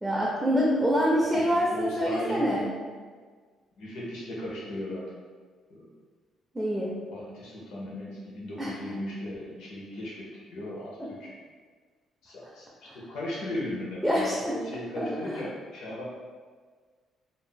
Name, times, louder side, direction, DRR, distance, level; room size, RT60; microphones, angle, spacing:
voice 1, 0.0-2.7 6.5-7.0 8.6-8.7 14.0-14.6 15.0-15.1, equal, ahead, -5 dB, 0.4 m, -25 dB
voice 2, 1.3-2.7 3.8-5.1 5.7-5.9 7.1-11.3 12.2-16.1, left 1 dB, 80° left, -5 dB, 0.8 m, -37 dB
2.6 x 2.0 x 3.7 m, 1.5 s
cardioid pair, 150°, 0 cm